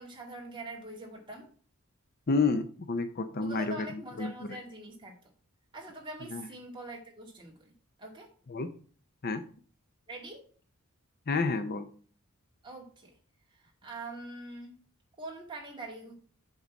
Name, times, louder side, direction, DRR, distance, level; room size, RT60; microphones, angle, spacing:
voice 1, 0.0-1.5 3.4-5.2 5.7-7.7 8.0-8.3 10.1-10.4 12.6-13.1 13.5-14.8 15.2-16.1, right 2 dB, 20° right, -1 dB, 2.1 m, -44 dB
voice 2, 2.3-4.6 6.3-6.5 8.5-8.7 9.2-9.4 11.3-11.9, left 4 dB, 45° left, 10 dB, 0.6 m, -30 dB
8.1 x 4.0 x 6.0 m, 0.43 s
head